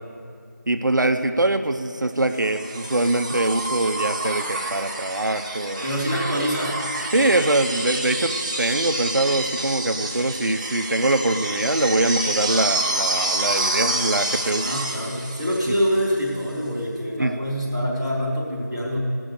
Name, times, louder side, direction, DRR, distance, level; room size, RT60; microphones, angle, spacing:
voice 1, 0.7-5.8 7.1-14.7 17.2-17.3, right 2 dB, 75° right, 7 dB, 0.6 m, -23 dB
sound 1, 2.3-16.3 17.7-17.8, right 2 dB, 20° right, 1.0 m, -28 dB
voice 2, 5.8-6.8 14.6-19.0, equal, 15° left, -9 dB, 1.9 m, -25 dB
16.5 x 6.2 x 6.6 m, 2.4 s
figure-of-eight pair, 175°, 10 cm